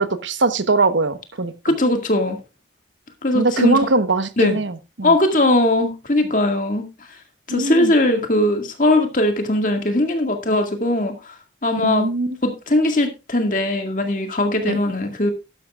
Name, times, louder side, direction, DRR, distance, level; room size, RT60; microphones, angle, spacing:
voice 1, 0.0-1.5 3.3-5.1 7.5-7.9 11.8-12.4 14.7-14.8, right 3 dB, 90° right, 11 dB, 1.1 m, -21 dB
voice 2, 1.6-2.4 3.2-3.9 4.4-4.6 5.0-6.9 7.5-11.1 11.6-12.1 12.4-15.3, left 1 dB, 45° left, 4 dB, 2.0 m, -19 dB
12.0 x 11.0 x 2.4 m, 0.27 s
head